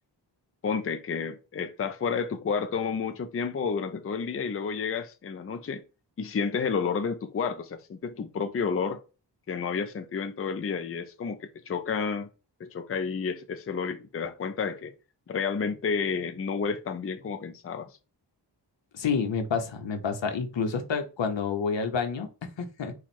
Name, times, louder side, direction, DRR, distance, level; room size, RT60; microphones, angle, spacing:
voice 1, 0.6-5.8 6.2-9.0 9.5-12.3 12.6-14.9 15.3-17.9, left 5 dB, 30° left, 0.5 m, -30 dB
voice 2, 18.9-22.9, left 5 dB, 85° left, 1.0 m, -29 dB
4.5 x 2.4 x 4.2 m
wide cardioid pair, 130°, 44 cm